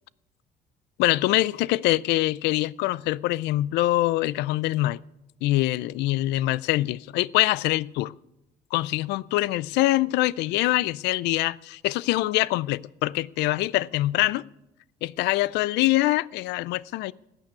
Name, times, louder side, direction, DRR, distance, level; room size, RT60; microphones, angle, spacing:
voice 1, 1.0-5.0 5.4-8.1 8.7-14.4 15.0-17.1, left 17 dB, 85° left, 0.4 m, -24 dB
14.5 x 9.2 x 8.2 m
cardioid pair, 110°, 17 cm